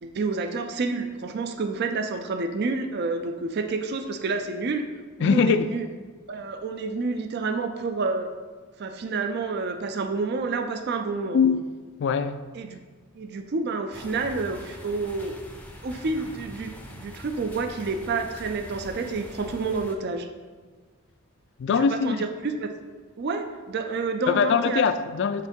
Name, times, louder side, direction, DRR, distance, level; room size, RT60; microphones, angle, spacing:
voice 1, 0.0-4.8 5.2-5.9 6.3-8.3 8.8-11.4 12.5-12.8 13.1-15.4 15.8-20.3 21.8-22.7 23.2-24.8, right 4 dB, 50° right, 7 dB, 0.4 m, -29 dB
voice 2, 5.2-5.7 11.3-11.7 12.0-12.4 21.6-22.2 24.3-25.5, left 6 dB, 55° left, 12 dB, 0.3 m, -22 dB
sound 1, 13.9-19.9, left 1 dB, 5° left, 0.5 m, -43 dB
6.6 x 3.5 x 5.3 m, 1.4 s
head